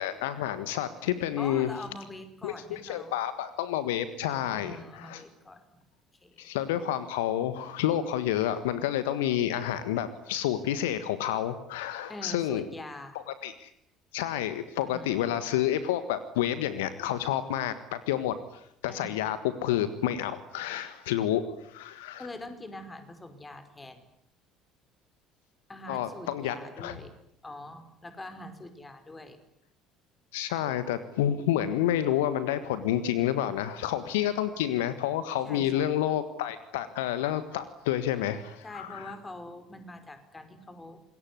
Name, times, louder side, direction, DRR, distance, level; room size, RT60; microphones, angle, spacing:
voice 1, 0.0-1.7 2.4-5.2 6.4-12.6 13.3-13.7 14.1-22.3 25.9-26.9 30.3-39.1, left 11 dB, 70° left, 13 dB, 1.5 m, -29 dB
voice 2, 1.4-3.2 4.4-5.8 6.2-6.5 12.1-13.2 14.8-15.3 18.9-19.2 22.2-24.0 25.7-27.1 27.4-29.4 35.4-35.9 38.6-41.0, left 1 dB, 20° left, 9 dB, 5.2 m, -44 dB
27.0 x 21.5 x 9.7 m, 0.75 s
figure-of-eight pair, 60°, 0 cm